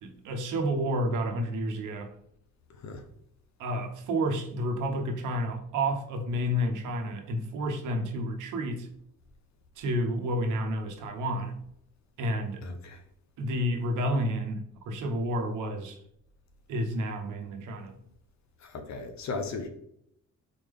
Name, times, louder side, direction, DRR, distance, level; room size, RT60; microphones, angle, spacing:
voice 1, 0.0-2.1 3.6-8.9 9.8-11.5 12.2-12.6 13.4-16.0 16.7-18.0, equal, 85° right, 5 dB, 0.9 m, -30 dB
voice 2, 2.7-3.0 12.6-13.0 18.6-19.7, left 3 dB, 65° left, 5 dB, 0.8 m, -37 dB
4.3 x 3.5 x 3.5 m, 0.71 s
cardioid pair, 90°, 30 cm